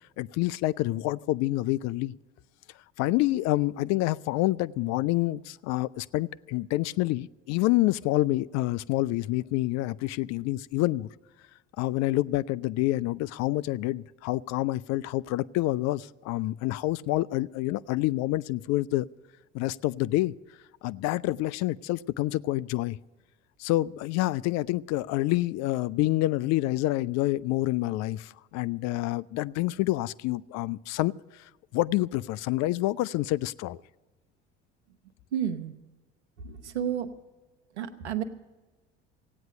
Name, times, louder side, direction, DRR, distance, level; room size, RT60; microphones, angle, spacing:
voice 1, 0.2-2.1 3.0-11.1 11.8-19.1 19.5-20.3 20.8-23.0 23.6-33.8, left 17 dB, 55° left, 19 dB, 0.4 m, -27 dB
voice 2, 35.3-35.7 36.4-37.1 37.7-38.2, right 9 dB, 85° right, 9 dB, 1.0 m, -31 dB
16.0 x 9.3 x 8.8 m, 1.2 s
hypercardioid pair, 65°, 33 cm